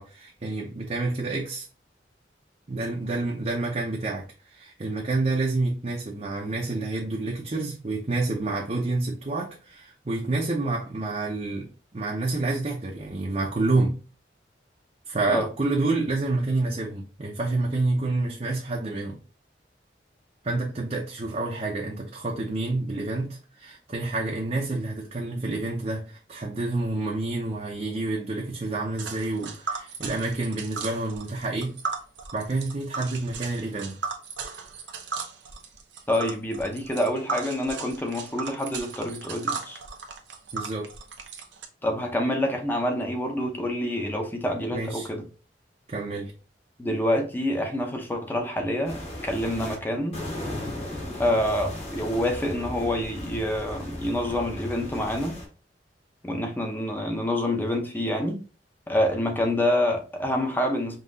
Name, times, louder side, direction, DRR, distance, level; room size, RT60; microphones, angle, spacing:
voice 1, 0.0-1.7 2.7-13.9 15.1-19.2 20.4-31.8 32.3-34.0 40.5-40.9 44.7-45.1 45.9-46.3, right 2 dB, 40° right, 0.7 m, -28 dB
Tick, 29.0-41.6, right 4 dB, 85° right, 0.8 m, -36 dB
voice 2, 36.1-39.8 41.8-45.2 46.8-50.2 51.2-55.4 56.2-58.4 58.9-61.0, left 1 dB, 10° left, 0.8 m, -27 dB
sound 1, 48.8-49.7 50.1-55.5, left 1 dB, 35° left, 1.6 m, -36 dB
5.5 x 2.9 x 2.7 m
head